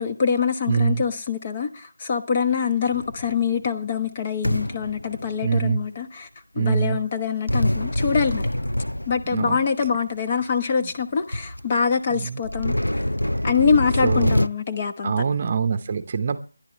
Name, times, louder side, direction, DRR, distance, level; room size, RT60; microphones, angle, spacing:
voice 1, 0.0-6.3 6.5-8.5 9.1-12.7 13.4-15.2, left 6 dB, 25° left, 1.1 m, -24 dB
voice 2, 0.7-1.0 5.4-5.8 6.6-7.0 9.3-9.6 10.8-10.9 12.1-12.4 14.0-14.3 15.0-16.4, right 5 dB, 30° right, 0.9 m, -24 dB
sound 1, 2.9-3.6 4.4-5.7 7.5-9.6 10.4-10.5 11.0-11.1 11.3-11.6 12.4-14.5, left 1 dB, 90° left, 0.5 m, -25 dB
22.5 x 10.5 x 3.2 m
figure-of-eight pair, 160°, 0 cm